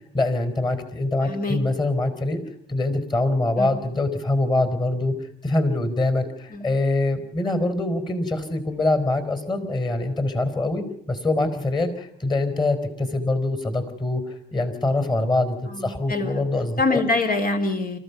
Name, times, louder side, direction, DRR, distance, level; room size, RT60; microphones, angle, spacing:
voice 1, 0.1-2.4 2.7-5.2 5.4-17.0, left 2 dB, 25° left, 9 dB, 4.4 m, -24 dB
voice 2, 1.2-1.6 3.6-3.7 6.5-6.7 15.7-16.4 16.8-18.0, left 2 dB, 45° left, 5 dB, 3.2 m, -25 dB
26.5 x 15.0 x 7.1 m, 0.70 s
cardioid pair, 90°, 20 cm